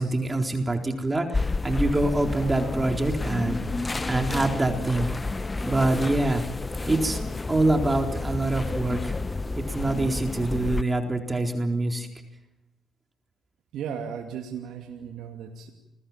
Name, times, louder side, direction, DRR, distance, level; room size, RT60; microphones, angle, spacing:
voice 1, 0.0-3.6 4.1-5.3 5.6-6.4 6.8-7.2 7.5-9.2 9.6-12.1, right 2 dB, 20° right, 3 dB, 4.1 m, -25 dB
sound 1, 1.3-10.8, left 3 dB, 25° left, 1.0 m, -30 dB
voice 2, 13.7-15.7, right 7 dB, 70° right, 2 dB, 2.7 m, -36 dB
30.0 x 21.0 x 7.5 m, 0.96 s
hypercardioid pair, 50°, 0 cm